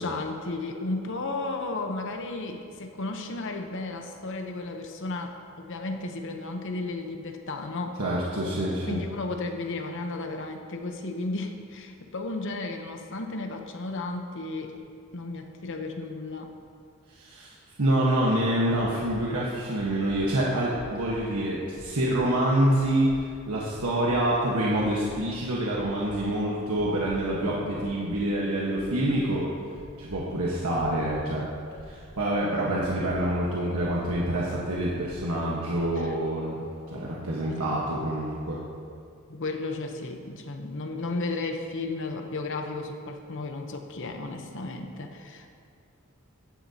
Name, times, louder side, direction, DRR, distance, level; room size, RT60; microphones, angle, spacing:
voice 1, 0.0-8.0 8.8-14.7 15.1-16.5 27.4-27.7 36.0-36.2 37.6-37.8 39.3-45.5, left 2 dB, 60° left, 4 dB, 0.9 m, -34 dB
voice 2, 8.0-9.0 17.2-17.5 17.8-29.5 30.0-31.5 31.9-36.6 36.9-38.6, right 1 dB, 85° right, -5 dB, 1.3 m, -26 dB
sound 1, 20.0-20.2 20.7-21.2 21.7-22.2 22.7-23.2 23.7-24.2 24.7-25.2 25.7-26.2 26.7-27.2 27.7-28.2 28.7-29.2 29.7-30.2 30.7-31.2 31.7-32.2 32.7-33.2 33.7-34.2 34.7-35.2 35.7-36.1, equal, 35° right, 2.7 m, -47 dB
15.0 x 10.0 x 2.8 m, 2.3 s
head